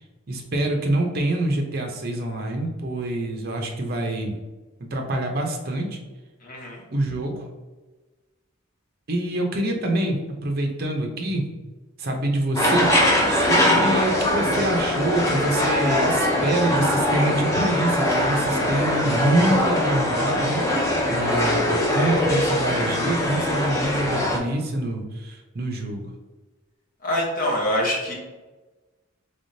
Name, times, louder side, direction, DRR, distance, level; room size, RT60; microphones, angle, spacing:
voice 1, 0.3-4.4 4.8-6.0 6.9-7.5 9.1-11.5 12.0-12.9 13.3-20.6 21.1-26.1, right 1 dB, 45° right, 2 dB, 0.6 m, -26 dB
voice 2, 6.4-6.8 27.0-28.1, left 1 dB, 40° left, -3 dB, 0.9 m, -25 dB
sound 1, 12.6-24.4, left 1 dB, 15° left, 0.5 m, -22 dB
3.5 x 3.4 x 2.6 m, 1.2 s
head